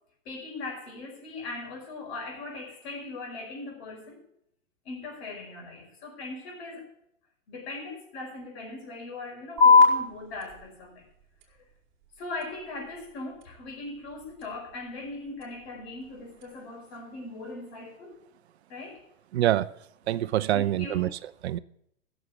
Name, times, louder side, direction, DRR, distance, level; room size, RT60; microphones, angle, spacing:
voice 1, 0.3-4.2 4.9-6.9 7.5-11.1 12.2-18.2 18.7-19.0 20.5-21.1, left 2 dB, 50° left, 5.4 m, -39 dB
sound 1, 9.6-16.6, left 4 dB, 35° right, 4.8 m, -27 dB
voice 2, 19.3-19.7 20.1-21.6, right 13 dB, 55° right, 0.6 m, -26 dB
15.0 x 7.3 x 8.1 m
hypercardioid pair, 130°, 40 cm